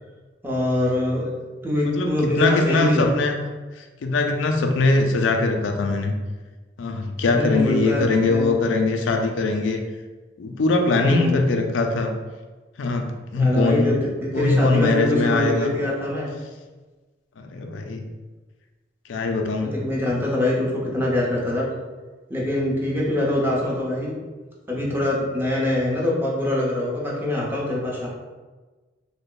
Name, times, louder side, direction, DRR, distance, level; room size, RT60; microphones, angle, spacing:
voice 1, 0.4-1.3 1.6-3.1 7.3-8.5 11.0-11.4 13.4-14.0 14.2-16.3 19.6-21.7 22.3-24.2 24.7-28.1, left 1 dB, 10° right, -4 dB, 0.7 m, -24 dB
voice 2, 1.9-3.5 3.8-6.1 6.8-9.8 10.4-12.1 12.8-14.0 14.3-15.7 17.4-18.0 19.1-19.7, left 3 dB, 85° left, 3 dB, 0.4 m, -22 dB
3.2 x 2.1 x 3.8 m, 1.3 s
head